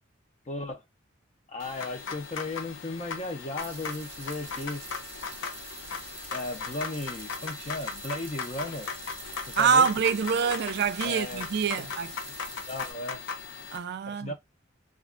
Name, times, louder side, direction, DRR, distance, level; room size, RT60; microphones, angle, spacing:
voice 1, 0.5-0.8 1.5-4.8 6.3-8.9 9.6-9.9 11.0-11.4 11.8-11.9 12.2-12.3 12.7-13.2 14.0-14.3, left 2 dB, 35° left, 0.6 m, -35 dB
sound 1, 1.6-13.8, left 5 dB, 75° left, 0.6 m, -38 dB
sound 2, 3.6-12.9, right 5 dB, 30° right, 0.8 m, -46 dB
voice 2, 9.6-12.1 13.7-14.3, right 6 dB, 55° right, 0.3 m, -25 dB
2.4 x 2.3 x 3.6 m
head